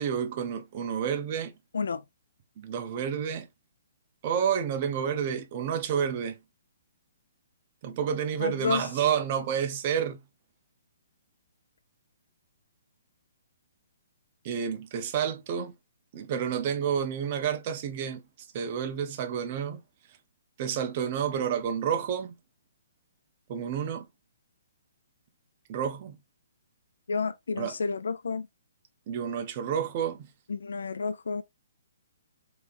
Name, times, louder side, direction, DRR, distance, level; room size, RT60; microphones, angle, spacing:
voice 1, 0.0-1.5 2.6-3.5 4.2-6.4 7.8-10.2 14.4-15.7 16.1-18.2 18.5-19.8 20.6-22.4 23.5-24.1 25.7-26.2 27.6-27.8 29.1-30.2, right 8 dB, 30° right, 0.5 m, -29 dB
voice 2, 8.4-8.8 27.1-28.5 30.5-31.4, left 5 dB, 90° left, 0.4 m, -30 dB
3.4 x 3.2 x 2.5 m
hypercardioid pair, 170°, 0 cm